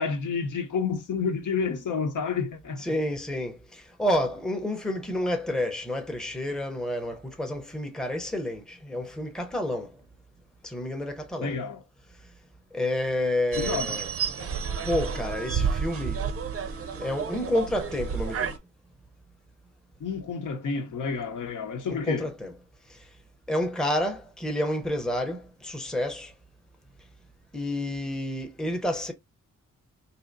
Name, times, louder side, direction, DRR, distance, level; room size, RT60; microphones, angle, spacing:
voice 1, 0.0-2.8 11.4-11.8 13.6-14.1 20.0-22.3, left 5 dB, 80° left, 0.8 m, -30 dB
voice 2, 2.8-9.9 10.6-11.6 12.7-14.1 14.8-16.2 17.0-18.5 21.9-22.5 23.5-26.3 27.5-29.1, left 1 dB, ahead, 0.6 m, -29 dB
sound 1, 13.5-18.6, right 6 dB, 50° right, 0.5 m, -30 dB
4.2 x 2.8 x 2.5 m
wide cardioid pair, 135°, 31 cm